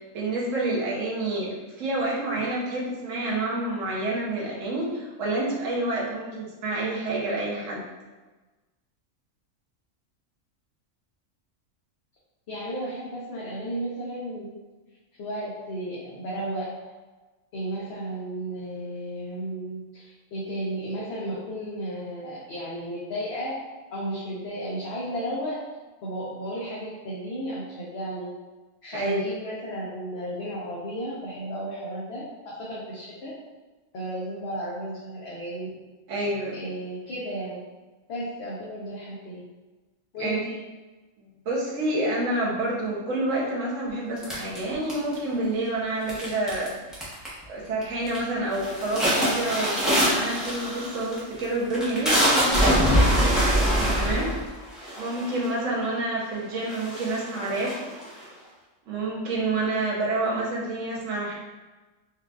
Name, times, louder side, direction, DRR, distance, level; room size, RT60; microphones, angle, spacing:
voice 1, 0.1-7.8 28.9-29.2 36.1-36.6 40.2-40.4 41.2-46.7 47.5-53.3 54.0-54.3 55.0-57.8 58.9-61.3, right 2 dB, 75° right, -5 dB, 1.2 m, -28 dB
voice 2, 12.5-14.5 15.2-16.7 17.5-23.6 23.9-25.6 26.0-28.3 28.8-33.3 33.9-35.7 36.5-37.6 38.1-39.4 40.1-40.6, right 1 dB, 60° left, -7 dB, 0.9 m, -33 dB
sound 1, 44.2-45.3 46.1-46.7 46.9-47.4 47.8-48.2 48.5-55.6 56.2-56.3 56.6-58.2, equal, ahead, 0.7 m, -24 dB
4.5 x 2.4 x 2.3 m, 1.2 s
omnidirectional pair, 1.4 m